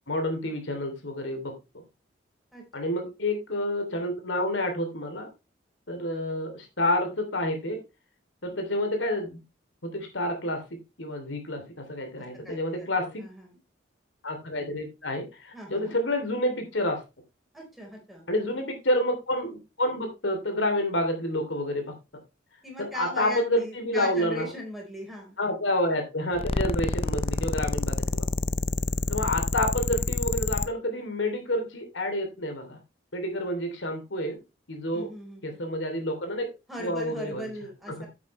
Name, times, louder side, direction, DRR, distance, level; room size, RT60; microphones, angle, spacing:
voice 1, 0.1-1.5 2.7-5.3 5.9-7.8 8.4-9.4 9.8-10.6 11.0-13.2 14.2-17.0 18.3-21.9 22.8-24.5 25.4-28.3 29.1-32.8 33.1-34.4 34.7-35.1 35.4-36.5 36.8-37.5 37.9-38.1, left 1 dB, 90° left, 5 dB, 3.0 m, -29 dB
voice 2, 12.4-13.6 15.5-16.0 17.5-18.4 22.6-25.3 34.9-35.4 36.7-38.1, equal, ahead, 0 dB, 4.4 m, -39 dB
sound 1, 26.4-30.7, left 3 dB, 30° left, 0.5 m, -28 dB
10.0 x 8.4 x 3.2 m, 0.26 s
head